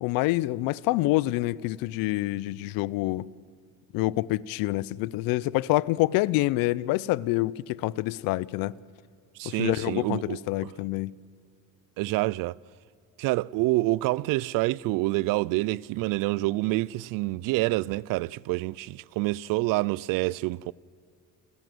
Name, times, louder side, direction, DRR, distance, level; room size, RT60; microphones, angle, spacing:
voice 1, 0.0-3.3 3.9-8.7 9.4-11.1, left 18 dB, 90° left, 0.6 m, -27 dB
voice 2, 9.4-10.7 12.0-12.6 13.2-20.7, right 20 dB, 75° right, 0.5 m, -27 dB
28.5 x 14.0 x 7.8 m
cardioid pair, 180°, 34 cm